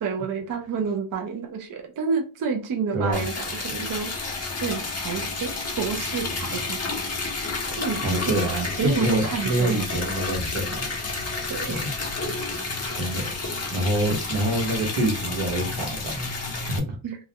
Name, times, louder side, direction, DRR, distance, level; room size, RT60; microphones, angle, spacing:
voice 1, 0.0-4.1 4.6-6.8 7.8-10.0 11.5-11.9 17.0-17.2, right 5 dB, 45° right, 4 dB, 0.4 m, -30 dB
voice 2, 2.9-3.2 7.9-10.9 11.7-11.9 12.9-13.3 13.7-17.0, right 1 dB, 75° right, 1 dB, 0.9 m, -26 dB
Liquid, 3.1-16.8, left 3 dB, 30° left, 0.6 m, -30 dB
2.3 x 2.1 x 2.7 m, 0.33 s
wide cardioid pair, 125°, 49 cm